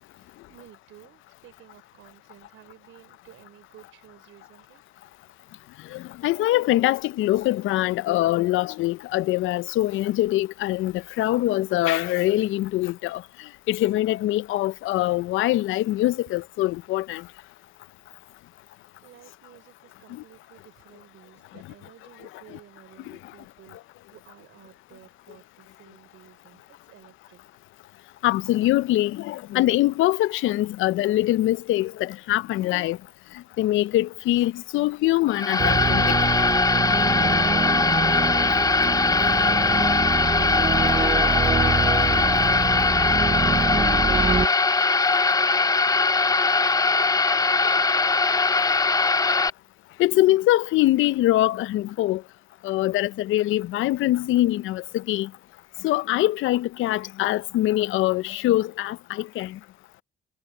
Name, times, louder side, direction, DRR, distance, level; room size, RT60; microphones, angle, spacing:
voice 1, 0.1-4.8 16.3-16.4 18.2-18.3 19.0-27.4 42.4-48.2 50.1-50.4, right 13 dB, 85° right, 5.2 m, -54 dB
voice 2, 5.9-13.2 13.7-17.2 20.1-20.2 28.2-33.0 33.6-36.1 50.0-52.2 52.6-55.3 55.8-59.6, left 15 dB, 80° left, 0.5 m, -23 dB
sound 1, 35.3-49.5, left 4 dB, 20° left, 0.5 m, -21 dB
sound 2, 35.6-44.5, right 5 dB, 25° right, 0.6 m, -26 dB
cardioid pair, 90°, 20 cm